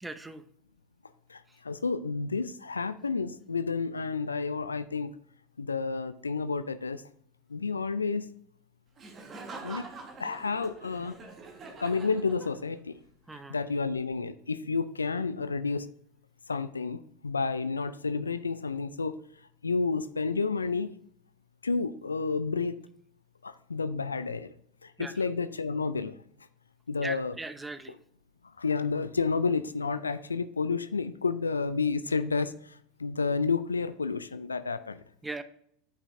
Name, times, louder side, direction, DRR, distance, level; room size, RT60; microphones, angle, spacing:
voice 1, 0.0-0.4 13.3-13.6 25.0-25.1 27.0-27.9 35.2-35.4, right 2 dB, 10° right, 11 dB, 0.6 m, -39 dB
voice 2, 1.3-5.2 5.6-7.0 7.5-8.3 9.6-9.8 10.2-11.2 11.8-13.0 13.3-15.9 16.5-19.2 19.6-20.9 21.6-22.8 23.4-24.5 24.8-26.2 26.9-27.4 27.9-28.0 28.6-35.0, left 4 dB, 90° left, 14 dB, 0.3 m, -30 dB
Laughter, 9.0-12.9, right 3 dB, 30° right, 1.5 m, -45 dB
8.4 x 5.5 x 2.6 m, 0.66 s
hypercardioid pair, 85°, 0 cm